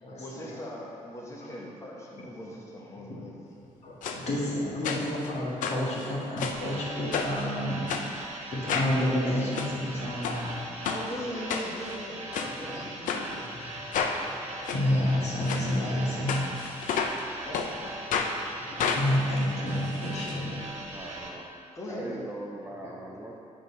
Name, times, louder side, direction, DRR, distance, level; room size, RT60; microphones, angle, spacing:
voice 1, 0.2-3.6 10.9-13.4 17.4-18.2 21.7-22.2, equal, 20° left, -3 dB, 1.2 m, -40 dB
voice 2, 3.8-10.6 13.9-16.5 18.6-20.8 22.8-23.1, left 1 dB, 55° left, -5 dB, 1.7 m, -30 dB
sound 1, 4.0-4.2 4.8-5.3 5.6-6.7 7.1-7.4 7.9-8.1 8.7-8.9 9.4-9.7 10.2-10.4 10.8-11.0 11.5-12.0 12.3-12.5 13.1-13.2 13.9-14.2 14.7-14.8 15.4-15.6 16.3-17.2 17.5-17.7 18.1-18.3 18.8-20.3 20.6-20.7 20.9-21.0, left 6 dB, 80° left, 0.6 m, -30 dB
sound 2, 6.5-21.3, right 1 dB, 55° right, 1.1 m, -40 dB
voice 3, 20.9-21.5 21.9-23.4, right 2 dB, 15° right, -1 dB, 0.5 m, -40 dB
7.8 x 3.9 x 5.3 m, 2.7 s
cardioid pair, 140°, 13 cm